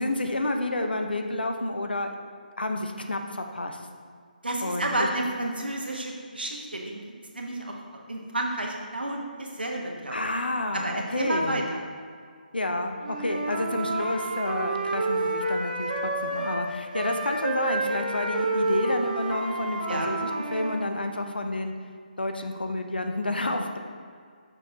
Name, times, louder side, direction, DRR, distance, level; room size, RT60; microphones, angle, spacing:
voice 1, 0.0-2.1 2.6-3.8 4.6-5.1 10.1-11.7 12.5-21.7 22.2-23.8, left 2 dB, 85° left, 4 dB, 0.7 m, -30 dB
voice 2, 4.4-7.0 7.3-10.2 10.7-11.6 19.9-20.1, right 1 dB, 90° right, 0 dB, 1.2 m, -31 dB
Wind instrument woodwind instrument, 13.0-16.6 16.9-20.8, right 2 dB, 55° right, 1.0 m, -29 dB
6.3 x 6.3 x 2.8 m, 2.1 s
figure-of-eight pair, 150°, 5 cm